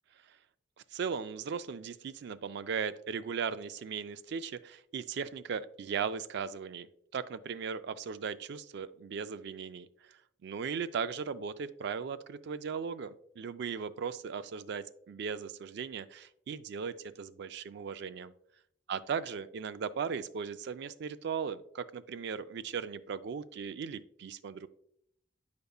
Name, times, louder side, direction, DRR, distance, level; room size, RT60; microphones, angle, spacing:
voice 1, 0.9-6.9 7.1-18.3 18.9-24.7, right 6 dB, 60° right, 13 dB, 0.3 m, -37 dB
8.0 x 5.1 x 2.3 m, 0.71 s
head